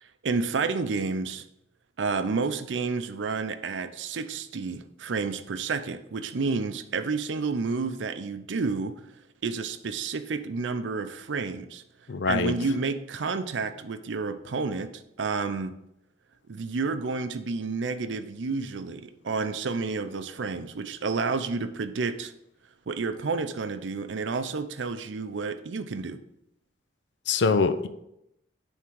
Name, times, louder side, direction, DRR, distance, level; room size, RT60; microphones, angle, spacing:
voice 1, 0.0-1.5 2.0-9.0 9.4-11.8 12.3-15.7 16.5-22.3 22.9-26.2, right 4 dB, 85° right, 10 dB, 0.5 m, -30 dB
voice 2, 12.1-12.5 27.3-27.9, left 4 dB, 75° left, 10 dB, 0.5 m, -23 dB
9.4 x 3.6 x 4.6 m, 0.81 s
head